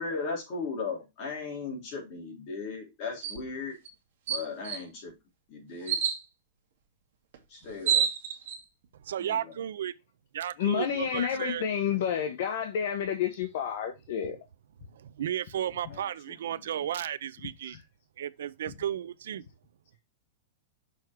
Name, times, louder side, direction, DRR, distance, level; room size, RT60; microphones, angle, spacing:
voice 1, 0.0-3.8 4.3-5.1 5.5-6.0 7.5-8.1 9.3-9.5 15.6-16.0 16.5-16.9, left 4 dB, 30° left, 3.7 m, -37 dB
sound 1, 3.2-3.4 3.8-3.9 4.3-4.8 5.9-6.2 7.3-7.4 7.6-8.6, right 8 dB, 55° right, 2.0 m, -28 dB
voice 2, 9.0-9.9 10.3-11.6 14.9-17.8 18.2-19.4, right 10 dB, 90° right, 0.6 m, -34 dB
voice 3, 10.6-14.4 17.7-17.8, left 8 dB, 50° left, 1.1 m, -30 dB
6.3 x 4.9 x 4.7 m
supercardioid pair, 180°, 0 cm